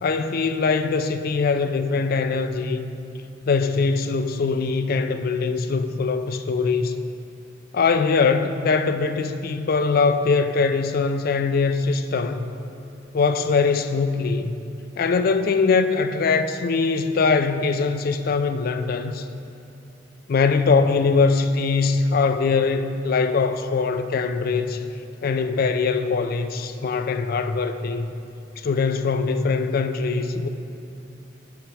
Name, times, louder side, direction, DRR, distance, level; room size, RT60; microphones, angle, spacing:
voice 1, 0.0-2.9 3.5-6.9 7.7-12.5 13.1-14.5 15.0-19.3 20.3-24.8 25.2-28.1 28.6-30.5, left 4 dB, 55° left, 0.4 m, -22 dB
7.0 x 6.8 x 4.7 m
head